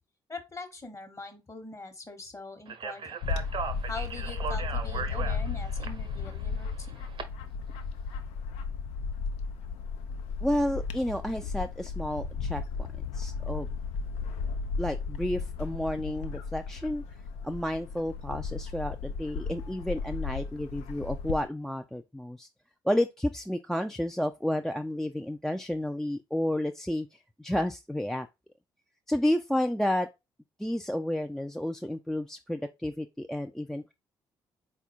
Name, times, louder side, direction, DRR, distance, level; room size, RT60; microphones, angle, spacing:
voice 1, 0.3-3.2 3.9-7.1, left 3 dB, 25° left, 1.0 m, -42 dB
Speech, 2.7-7.2, right 6 dB, 45° right, 0.6 m, -37 dB
Bird / Wind, 3.2-21.5, left 5 dB, 65° left, 0.4 m, -35 dB
voice 2, 10.4-12.6 13.1-13.7 14.8-17.0 17.4-22.5 22.8-28.3 29.1-30.1 30.6-33.9, left 1 dB, 5° left, 0.3 m, -31 dB
4.1 x 2.3 x 4.2 m
figure-of-eight pair, 40°, 11 cm